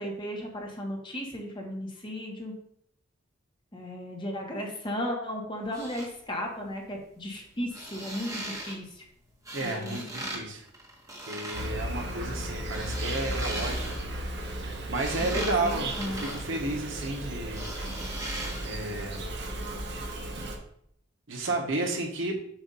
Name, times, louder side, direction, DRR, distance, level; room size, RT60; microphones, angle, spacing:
voice 1, 0.0-2.5 3.7-9.0 9.6-10.0 15.3-16.2, equal, 25° left, 0 dB, 1.2 m, -35 dB
sound 1, 5.6-6.1 7.6-8.8 9.5-10.4 10.7-11.7 12.5-14.2 14.7-17.1 17.5-18.8 19.1-19.2, right 1 dB, 15° right, 1.2 m, -39 dB
voice 2, 9.5-10.6 11.2-13.9 14.9-17.7 18.6-19.3 21.3-22.4, right 2 dB, 75° right, 1 dB, 1.2 m, -32 dB
Insect, 11.5-20.6, right 1 dB, 60° right, 1.0 m, -35 dB
7.3 x 2.6 x 5.5 m, 0.69 s
head